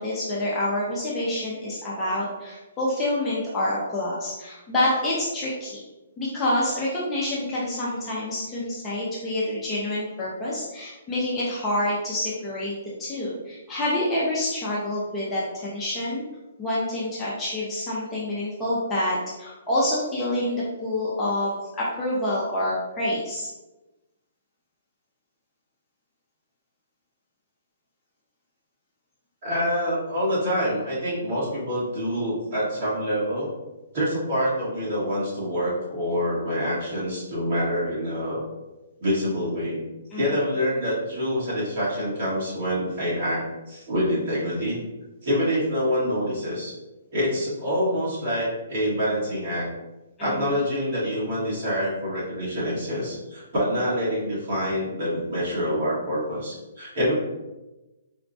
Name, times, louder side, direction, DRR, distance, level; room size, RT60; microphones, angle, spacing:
voice 1, 0.0-5.8 6.2-12.7 13.0-16.2 16.6-23.5 40.1-40.4 50.2-50.6, left 1 dB, 10° left, -7 dB, 0.5 m, -27 dB
voice 2, 29.4-33.5 33.9-38.4 39.0-39.8 40.2-44.8 45.2-46.7 47.1-49.7 50.2-57.1, equal, 35° right, -8 dB, 1.4 m, -26 dB
4.2 x 2.1 x 2.6 m, 1.1 s
hypercardioid pair, 170°, 0 cm